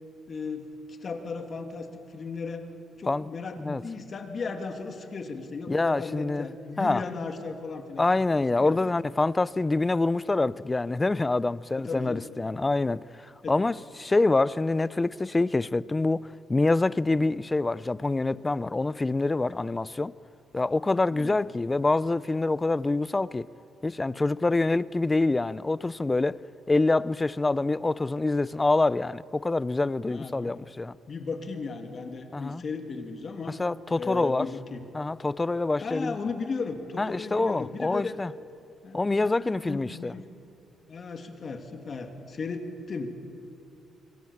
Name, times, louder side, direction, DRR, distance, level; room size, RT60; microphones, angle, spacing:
voice 1, 0.3-2.6 3.0-8.1 8.6-8.9 11.8-12.3 13.4-13.5 21.1-21.4 30.1-30.6 31.1-33.6 34.0-34.8 35.8-38.2 38.8-40.2 40.9-43.1, left 4 dB, 45° left, 2.8 m, -36 dB
voice 2, 5.7-6.5 6.8-7.0 8.0-20.1 20.5-23.5 23.8-26.4 26.7-31.0 32.3-32.6 33.6-34.5 34.9-36.2 37.0-38.3 38.9-40.1, left 2 dB, 20° left, 0.6 m, -26 dB
26.5 x 23.5 x 7.3 m
cardioid pair, 90°, 0 cm